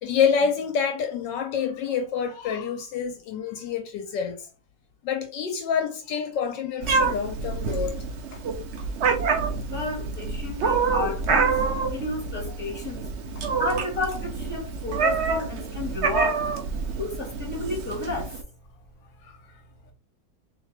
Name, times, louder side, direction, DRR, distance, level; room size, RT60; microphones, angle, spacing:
voice 1, 0.0-4.5 5.0-8.0 8.3-8.4, left 7 dB, 80° left, 1.3 m, -27 dB
Meow, 6.8-18.4, right 5 dB, 85° right, 0.5 m, -27 dB
voice 2, 9.7-11.5 11.9-13.0 13.6-14.2 14.5-16.3 17.0-17.1 17.4-18.2, left 2 dB, 5° left, 1.6 m, -31 dB
3.6 x 3.1 x 3.3 m
omnidirectional pair, 2.0 m